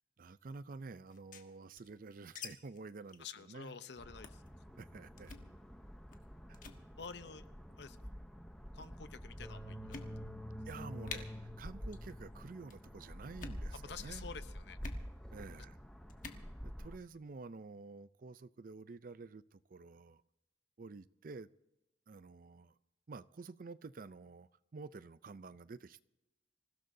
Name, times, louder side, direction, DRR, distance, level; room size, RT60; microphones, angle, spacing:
voice 1, 0.2-3.8 4.8-5.3 6.5-6.6 10.6-14.3 15.3-15.8 16.6-20.2 20.8-21.5 22.1-22.7 23.1-26.0, right 4 dB, 50° right, 0.4 m, -50 dB
sound 1, 1.1-2.5 2.7-2.8 3.1-3.3 3.6-3.8 4.2-4.5 5.2-5.5 6.1-6.3 6.5-6.8 7.7-8.1 8.8-8.9 9.4-9.5 9.9-10.5 10.7-10.8 11.0-11.2 11.8-12.1 12.4-12.8 13.3-13.6 14.8-15.0 16.1-16.4, left 5 dB, 45° left, 1.4 m, -48 dB
voice 2, 3.2-4.4 6.9-7.4 7.8-8.1 8.7-10.1 13.7-14.8, left 5 dB, 65° left, 0.7 m, -49 dB
sound 2, 4.0-17.0, equal, 5° left, 0.8 m, -48 dB
26.0 x 16.0 x 2.7 m
head